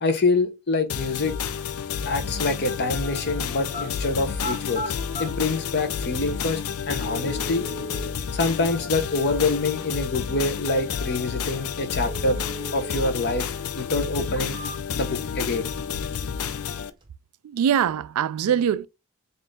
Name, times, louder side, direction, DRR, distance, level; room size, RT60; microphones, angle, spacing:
voice 1, 0.0-1.4 2.0-7.6 8.3-12.4 12.7-13.5 13.7-14.6 14.9-15.7, left 3 dB, 50° left, 0.8 m, -26 dB
sound 1, 0.9-16.9, left 7 dB, 80° left, 0.4 m, -30 dB
sound 2, 3.7-3.9 4.3-5.3 6.3-6.4 7.1-8.1 12.1-13.1 13.5-13.6 14.2-15.1 15.5-16.2 16.5-17.1, right 1 dB, 20° right, 0.8 m, -36 dB
voice 2, 17.4-18.9, right 8 dB, 75° right, 0.3 m, -23 dB
4.1 x 2.6 x 3.4 m
head